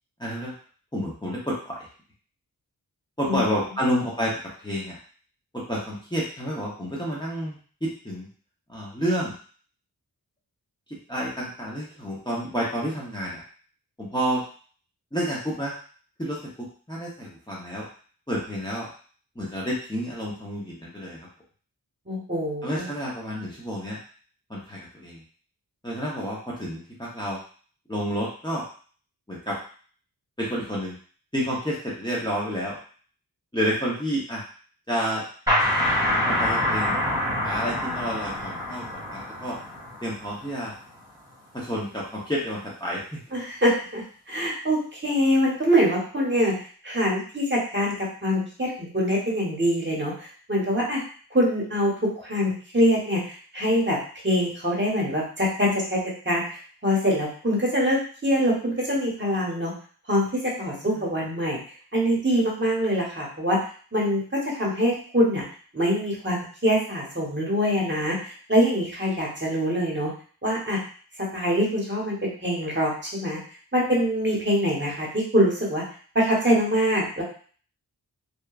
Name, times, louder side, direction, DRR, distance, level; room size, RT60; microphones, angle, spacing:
voice 1, 0.2-0.5 0.9-1.9 3.2-4.3 4.6-5.0 5.5-8.3 8.7-9.3 11.1-13.4 14.0-14.4 15.1-15.7 16.2-16.4 16.9-17.9 18.3-18.9 19.4-21.3 22.6-24.0 24.5-25.2 25.8-27.4 27.9-28.6 29.3-29.6 30.4-30.9 31.3-32.8 33.5-34.4 34.9-35.2 36.3-36.9 37.4-39.6 40.0-40.7 41.5-43.2, equal, 10° left, -5 dB, 0.7 m, -29 dB
voice 2, 22.1-22.9 43.3-46.6 46.8-51.0 51.3-51.9 52.2-54.0 54.2-59.7 60.1-61.6 61.9-63.6 63.9-65.4 65.7-70.1 70.4-70.8 71.2-73.4 73.7-75.8 76.1-77.2, equal, 30° right, -4 dB, 1.0 m, -24 dB
sound 1, 35.5-40.9, left 1 dB, 10° right, 1.2 m, -26 dB
2.9 x 2.2 x 2.3 m, 0.43 s
wide cardioid pair, 55°, 39 cm